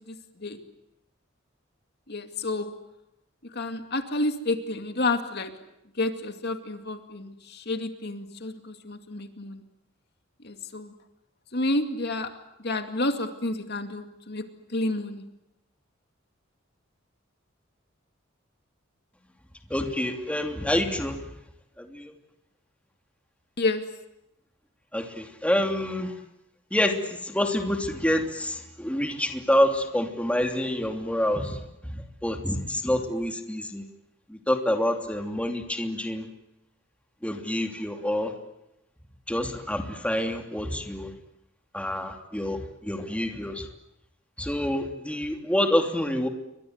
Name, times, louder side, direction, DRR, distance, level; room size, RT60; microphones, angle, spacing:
voice 1, 2.1-2.7 3.5-5.5 6.0-9.6 10.4-10.9 11.5-12.3 12.6-14.4 14.7-15.2 23.6-23.8, left 2 dB, 55° left, 7 dB, 2.3 m, -30 dB
voice 2, 19.7-21.2 21.8-22.1 24.9-26.1 26.7-33.8 34.3-36.3 37.2-38.3 39.3-41.1 41.7-43.7 44.4-46.3, left 1 dB, 5° left, 4 dB, 3.0 m, -27 dB
30.0 x 24.0 x 8.0 m, 0.86 s
head